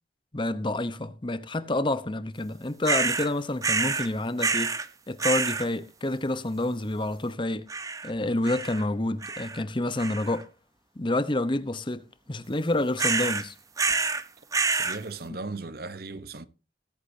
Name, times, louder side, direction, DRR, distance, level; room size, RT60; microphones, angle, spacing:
voice 1, 0.3-4.7 5.1-7.7 8.0-10.5 11.0-13.5 15.3-15.4, left 2 dB, 25° left, 0.9 m, -28 dB
sound 1, 2.8-3.3 3.6-4.1 4.4-4.9 5.2-5.7 7.7-8.1 8.4-8.8 9.2-9.6 10.0-10.4 13.0-13.4 13.8-14.2 14.5-15.0, right 4 dB, 20° right, 0.7 m, -27 dB
voice 2, 14.7-16.5, right 3 dB, 55° right, 1.0 m, -37 dB
19.5 x 8.4 x 2.7 m
head